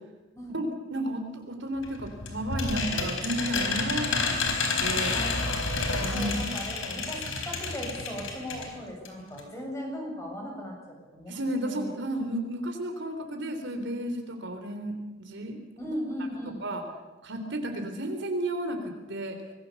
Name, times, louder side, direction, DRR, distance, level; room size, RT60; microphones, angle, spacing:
voice 1, 0.5-4.5 4.8-5.2 6.0-6.5 9.2-9.3 11.3-15.6 16.6-16.8 17.2-19.4, right 1 dB, 65° right, 5 dB, 3.5 m, -33 dB
sound 1, 1.8-8.7 9.0-9.1 9.4-9.5, left 3 dB, 75° left, 4.3 m, -30 dB
voice 2, 4.9-5.4 6.1-11.4 11.7-11.9 15.8-16.6, equal, 15° left, 0 dB, 7.1 m, -37 dB
25.0 x 20.5 x 7.1 m, 1.1 s
head